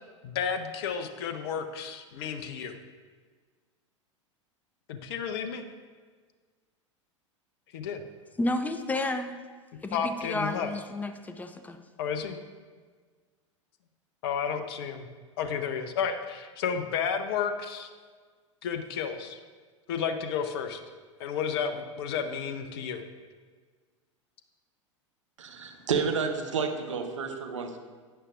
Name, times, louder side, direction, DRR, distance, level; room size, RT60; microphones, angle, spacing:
voice 1, 0.2-2.7 4.9-5.6 7.7-8.0 9.9-10.7 12.0-12.4 14.2-15.1 15.4-17.9 18.6-19.4 19.9-20.8 21.2-23.0, left 7 dB, 50° left, 8 dB, 0.7 m, -32 dB
voice 2, 8.4-9.3 9.8-11.8, left 2 dB, 10° left, 8 dB, 0.6 m, -31 dB
voice 3, 25.4-27.8, right 5 dB, 70° right, 4 dB, 1.0 m, -30 dB
11.0 x 9.1 x 2.5 m, 1.5 s
figure-of-eight pair, 85°, 16 cm